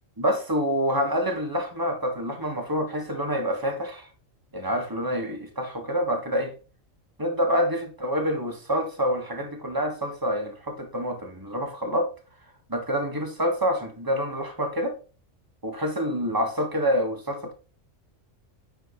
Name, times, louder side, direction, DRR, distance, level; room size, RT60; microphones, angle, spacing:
voice 1, 0.2-4.1 4.5-6.5 7.2-12.1 12.7-15.0 15.6-17.5, equal, 15° right, 1.7 m, -27 dB
9.1 x 5.0 x 3.9 m
omnidirectional pair, 1.3 m